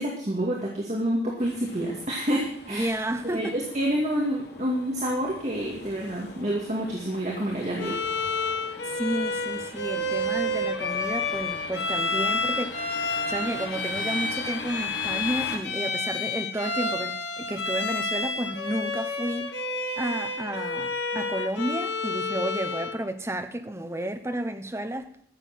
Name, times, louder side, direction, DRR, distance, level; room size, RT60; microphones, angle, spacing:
voice 1, 0.0-2.9 3.2-8.0, right 1 dB, 40° right, 2.2 m, -28 dB
sound 1, 1.4-15.6, left 2 dB, 65° left, 1.6 m, -42 dB
voice 2, 2.7-3.5 8.8-12.9 13.3-19.5 20.0-25.2, right 1 dB, 15° right, 0.8 m, -32 dB
Bowed string instrument, 7.8-23.0, left 2 dB, 80° left, 1.6 m, -30 dB
14.5 x 7.5 x 5.9 m
head